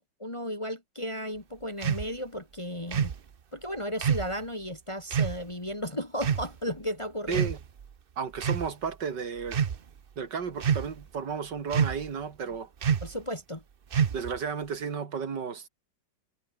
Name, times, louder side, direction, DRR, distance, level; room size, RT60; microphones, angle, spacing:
voice 1, 0.0-3.1 3.5-7.5 13.0-13.6, equal, 15° left, 2.2 m, -34 dB
sound 1, 1.8-2.1 2.9-3.2 4.0-4.3 5.1-5.4 6.2-6.5 7.3-7.8 8.4-8.7 9.4-9.8 10.6-11.0 11.7-12.1 12.8-13.2 13.9-14.4, right 7 dB, 45° right, 0.7 m, -27 dB
voice 2, 7.3-7.6 8.2-9.7 10.2-12.7 14.1-15.7, right 6 dB, 65° right, 2.8 m, -33 dB
omnidirectional pair, 2.0 m